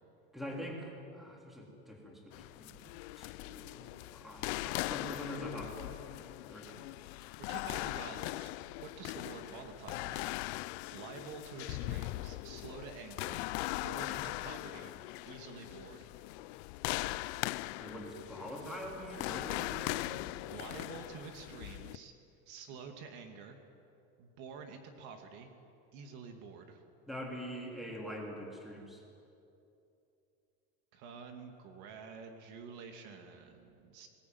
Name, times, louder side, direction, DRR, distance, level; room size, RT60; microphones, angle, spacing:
voice 1, 0.3-2.8 3.2-6.8 17.8-20.1 27.1-29.0, equal, ahead, -1 dB, 3.6 m, -44 dB
sound 1, 2.3-22.0, left 19 dB, 75° left, 0.6 m, -40 dB
voice 2, 7.4-8.5 8.8-14.9 15.3-16.1 20.5-22.1 22.5-23.6 24.2-25.5 25.9-26.8 30.9-34.1, right 5 dB, 60° right, 4 dB, 2.5 m, -49 dB
21.5 x 19.5 x 9.5 m, 2.7 s
cardioid pair, 160°, 33 cm